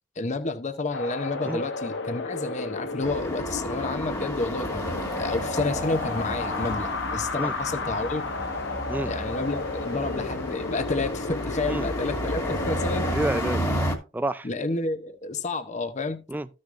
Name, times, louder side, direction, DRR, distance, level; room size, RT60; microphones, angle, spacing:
voice 1, 0.2-8.2 9.1-13.1 14.4-16.2, left 3 dB, 40° left, 0.7 m, -30 dB
Wind, 0.9-13.1, left 3 dB, 70° left, 0.9 m, -33 dB
sound 1, 3.0-14.0, equal, 20° left, 1.7 m, -32 dB
voice 2, 13.1-13.9 14.1-14.5 16.3-16.5, right 1 dB, 10° right, 0.4 m, -29 dB
14.0 x 6.4 x 2.5 m
head